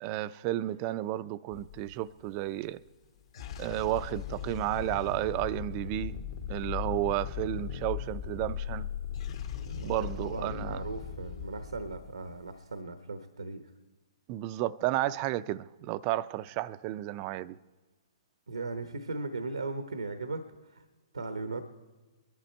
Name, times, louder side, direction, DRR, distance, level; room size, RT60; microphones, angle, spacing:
voice 1, 0.0-2.8 3.6-6.2 6.5-8.9 9.8-10.8 14.3-17.6, right 15 dB, 35° right, 0.4 m, -32 dB
sound 1, 1.5-2.2 3.2-12.6, left 9 dB, 60° left, 1.7 m, -38 dB
voice 2, 9.6-13.7 18.5-20.8 21.1-21.6, right 3 dB, 90° right, 0.9 m, -38 dB
22.0 x 11.0 x 4.4 m
hypercardioid pair, 130°, 3 cm